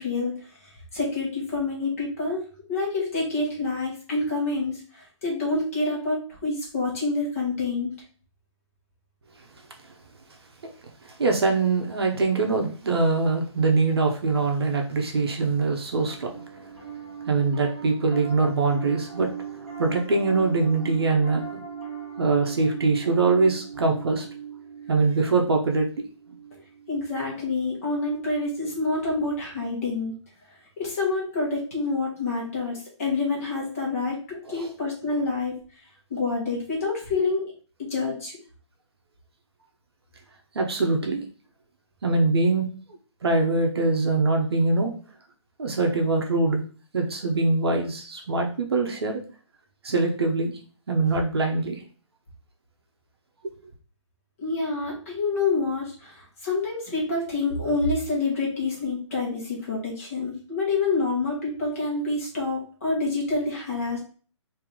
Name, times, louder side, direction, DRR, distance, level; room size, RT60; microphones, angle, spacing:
voice 1, 0.0-2.4 2.7-7.9 26.9-30.1 30.8-35.5 36.1-37.5 37.8-38.4 54.4-64.0, left 3 dB, 25° left, 1.6 m, -27 dB
voice 2, 11.0-16.7 17.3-21.6 22.2-24.2 24.9-25.9 26.3-26.4 34.5-34.7 40.5-41.2 42.0-42.7 43.2-44.9 45.6-46.6 46.9-49.2 49.8-50.5 50.9-51.8, right 3 dB, 50° right, 0.9 m, -23 dB
Piano, 16.0-27.5, right 7 dB, ahead, 1.7 m, -38 dB
3.7 x 2.9 x 4.7 m
hypercardioid pair, 175°, 16 cm